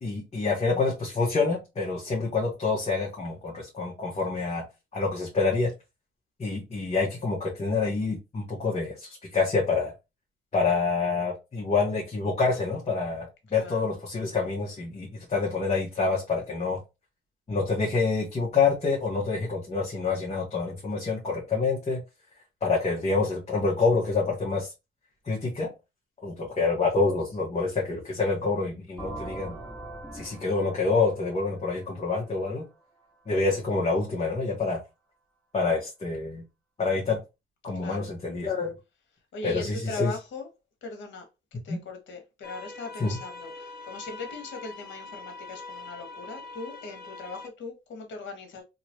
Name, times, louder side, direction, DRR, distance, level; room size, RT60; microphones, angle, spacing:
voice 1, 0.0-4.6 4.9-5.7 6.4-9.9 10.5-13.3 13.5-16.8 17.5-22.0 22.6-24.7 25.2-25.7 26.2-29.6 30.1-32.6 33.3-34.8 35.5-36.4 36.8-37.2 37.6-38.7 39.4-40.1 41.7-41.8 43.0-43.2, left 4 dB, 35° left, 1.2 m, -27 dB
voice 2, 13.5-13.9 37.8-38.1 39.3-40.5 40.8-41.2 41.5-48.6, left 3 dB, 70° left, 1.4 m, -39 dB
sound 1, 29.0-32.7, right 1 dB, 5° left, 2.0 m, -42 dB
sound 2, 42.4-47.5, left 3 dB, 55° left, 1.0 m, -43 dB
3.0 x 3.0 x 2.8 m
cardioid pair, 90°, 20 cm